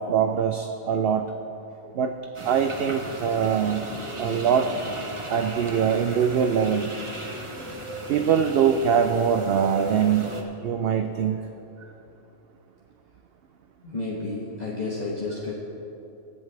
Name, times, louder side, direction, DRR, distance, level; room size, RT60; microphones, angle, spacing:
voice 1, 0.0-1.3 1.9-2.1 2.4-3.9 4.2-4.7 5.3-7.0 8.1-10.4 10.6-11.4, right 7 dB, 60° right, 7 dB, 0.6 m, -23 dB
sound 1, 2.3-10.4, right 1 dB, 25° right, 1.0 m, -37 dB
voice 2, 13.8-15.5, left 3 dB, 35° left, -6 dB, 1.4 m, -31 dB
22.5 x 8.2 x 3.3 m, 3.0 s
omnidirectional pair, 1.3 m